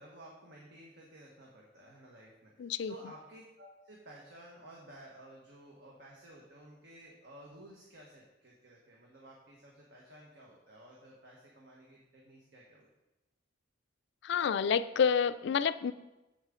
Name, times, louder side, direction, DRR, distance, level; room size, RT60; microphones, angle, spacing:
voice 1, 0.0-12.9, right 1 dB, 60° right, -3 dB, 1.3 m, -54 dB
voice 2, 2.6-2.9 14.2-15.9, left 7 dB, 60° left, 13 dB, 0.3 m, -29 dB
8.0 x 7.4 x 3.7 m, 0.99 s
head